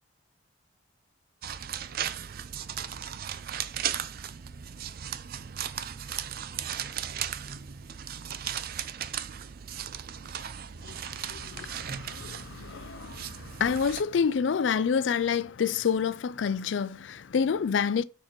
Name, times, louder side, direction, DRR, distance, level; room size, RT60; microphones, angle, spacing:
sound 1, 1.4-14.0, right 9 dB, 55° right, 0.5 m, -36 dB
voice 1, 10.8-18.0, left 6 dB, 80° left, 0.4 m, -28 dB
6.5 x 4.5 x 5.9 m
head